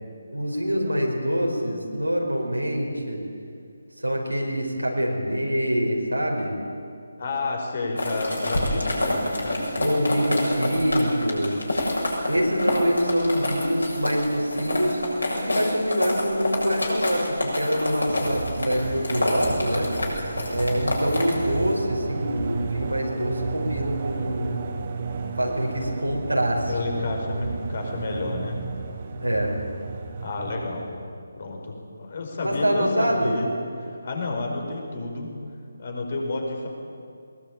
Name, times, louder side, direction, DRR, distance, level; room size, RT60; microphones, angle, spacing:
voice 1, 0.3-3.2 4.0-6.6 9.8-11.9 12.3-15.0 15.3-19.9 20.5-24.6 25.3-26.7 29.2-29.5 32.4-33.4, equal, 90° right, -1 dB, 4.9 m, -25 dB
voice 2, 7.2-9.9 26.7-28.6 30.2-30.9 31.4-33.5 33.8-35.3 35.8-36.7, left 2 dB, 45° left, 1 dB, 5.4 m, -30 dB
sound 1, 8.0-21.7, left 1 dB, 70° left, 7.3 m, -28 dB
sound 2, 18.0-31.1, right 5 dB, 35° right, 1.7 m, -33 dB
21.0 x 20.5 x 8.9 m, 2.4 s
figure-of-eight pair, 150°, 0 cm